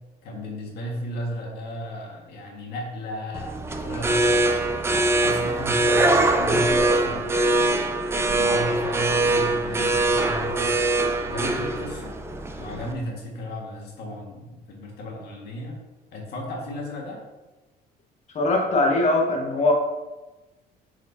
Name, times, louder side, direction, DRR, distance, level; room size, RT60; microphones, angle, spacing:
voice 1, 0.2-4.8 5.2-7.9 8.3-10.8 11.2-12.1 12.6-15.8 16.1-17.2, equal, 75° left, -1 dB, 1.8 m, -34 dB
sound 1, 3.3-12.9, right 2 dB, 15° right, 0.5 m, -23 dB
voice 2, 18.3-19.7, left 2 dB, 45° left, 1 dB, 1.3 m, -21 dB
7.9 x 4.9 x 2.8 m, 1.2 s
cardioid pair, 140°, 17 cm